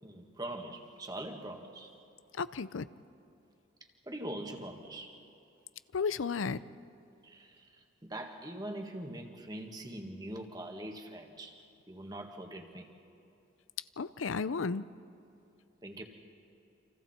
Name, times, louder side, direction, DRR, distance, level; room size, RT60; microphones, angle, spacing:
voice 1, 0.0-1.9 4.0-5.2 7.2-11.6 11.9-12.9 15.8-16.0, right 1 dB, 20° right, 4 dB, 1.8 m, -43 dB
voice 2, 2.3-2.9 5.9-6.6 14.0-14.8, left 5 dB, 90° left, 16 dB, 0.6 m, -33 dB
30.0 x 26.5 x 4.4 m, 2.7 s
head